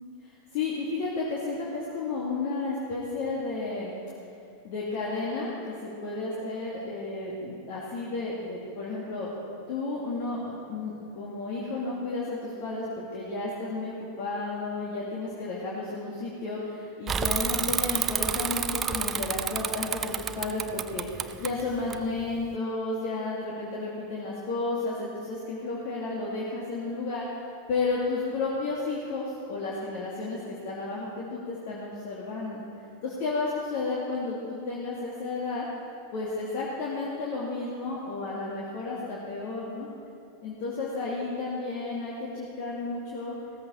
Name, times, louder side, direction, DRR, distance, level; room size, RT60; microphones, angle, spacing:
voice 1, 0.2-3.9 4.6-9.3 9.7-27.2 27.7-32.6 33.0-35.7 36.1-39.9 40.4-43.3, left 3 dB, 45° left, -5 dB, 2.3 m, -32 dB
Bicycle / Mechanisms, 17.1-22.5, right 7 dB, 25° right, 0.5 m, -30 dB
16.5 x 14.0 x 4.5 m, 2.5 s
figure-of-eight pair, 90°, 0 cm